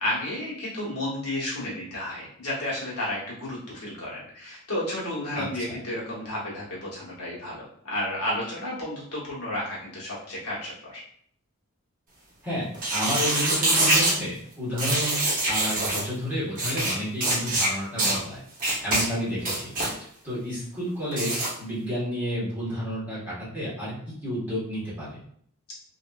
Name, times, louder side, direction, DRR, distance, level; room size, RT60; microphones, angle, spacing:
voice 1, 0.0-7.6 7.8-11.0 19.0-19.1, left 1 dB, 85° left, -6 dB, 1.2 m, -32 dB
voice 2, 5.3-5.8 12.4-18.4 18.8-23.9 24.2-25.2, equal, 10° right, -10 dB, 1.3 m, -31 dB
sound 1, 12.7-14.2 14.8-16.0 16.6-16.9 17.2-17.7 18.0-18.2 18.6-19.0 19.4-19.9 21.1-21.5, right 2 dB, 40° right, 0.9 m, -24 dB
2.9 x 2.5 x 2.3 m, 0.64 s
head